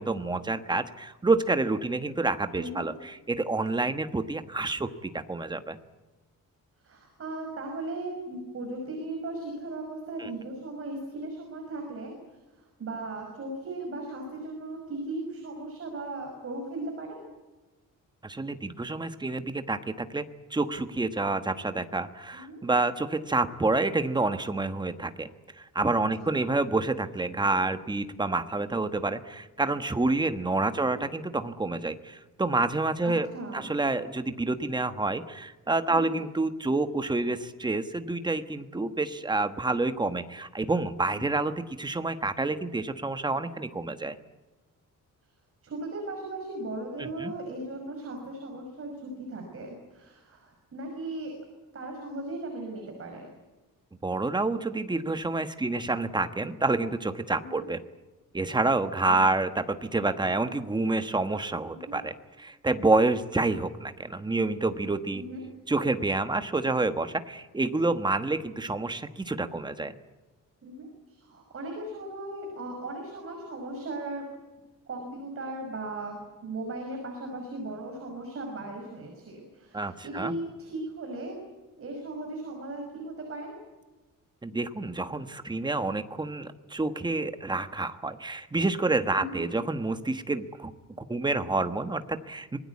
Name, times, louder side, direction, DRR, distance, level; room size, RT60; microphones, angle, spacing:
voice 1, 0.0-5.8 10.2-10.3 18.2-20.2 20.5-25.3 25.6-33.3 33.5-44.2 47.0-47.3 54.0-57.8 58.3-65.2 65.7-70.0 79.7-80.3 84.4-90.7 91.1-92.6, right 2 dB, 15° right, 9 dB, 1.3 m, -28 dB
voice 2, 6.8-12.1 12.6-17.2 22.3-22.6 26.1-26.3 30.7-31.0 33.0-33.7 35.9-36.2 41.1-41.3 45.6-51.3 51.7-53.3 57.4-57.5 59.1-59.2 61.7-62.0 65.1-65.4 70.6-74.2 74.9-76.2 76.4-81.4 81.8-83.6 89.2-89.4, right 2 dB, 40° right, 2 dB, 5.8 m, -37 dB
26.0 x 20.5 x 8.5 m, 1.2 s
wide cardioid pair, 170°, 33 cm